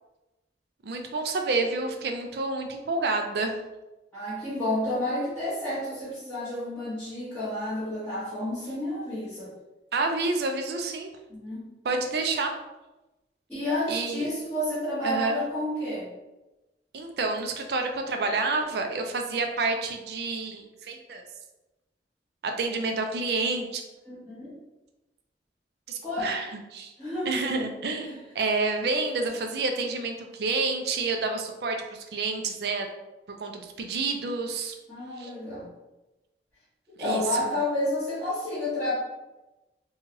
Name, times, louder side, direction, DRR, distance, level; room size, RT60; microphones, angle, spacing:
voice 1, 0.8-3.5 9.9-11.1 11.8-12.5 13.9-14.3 15.0-15.4 16.9-21.2 22.4-23.8 25.9-26.9 27.3-32.9 33.3-34.7 35.2-35.3 37.0-37.6, right 3 dB, 65° right, 4 dB, 0.4 m, -29 dB
voice 2, 4.1-9.5 11.3-11.7 13.5-16.1 24.1-24.5 26.0-26.4 27.0-27.4 28.0-28.1 34.9-35.7 37.0-38.9, left 1 dB, 5° left, -16 dB, 1.0 m, -30 dB
3.0 x 2.3 x 2.8 m, 1.0 s
head